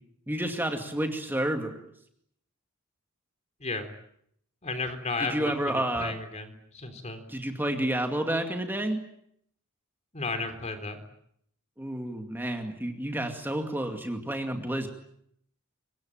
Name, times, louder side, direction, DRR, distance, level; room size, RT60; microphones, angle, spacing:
voice 1, 0.3-1.7 5.2-6.2 7.3-9.0 11.8-14.9, right 1 dB, 10° right, 4 dB, 2.3 m, -30 dB
voice 2, 3.6-3.9 4.6-7.2 10.1-11.0, left 3 dB, 30° left, 7 dB, 3.8 m, -34 dB
26.0 x 23.5 x 8.9 m, 0.72 s
head